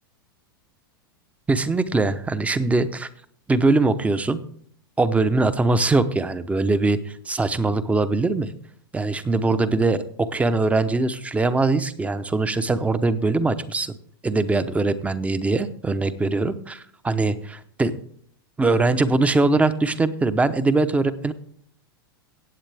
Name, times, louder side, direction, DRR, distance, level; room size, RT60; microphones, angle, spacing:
voice 1, 1.5-3.1 3.5-4.4 5.0-8.5 8.9-13.9 14.2-17.9 18.6-21.3, right 3 dB, 10° right, 13 dB, 0.8 m, -22 dB
15.5 x 8.8 x 3.5 m, 0.62 s
hypercardioid pair, 100°, 12 cm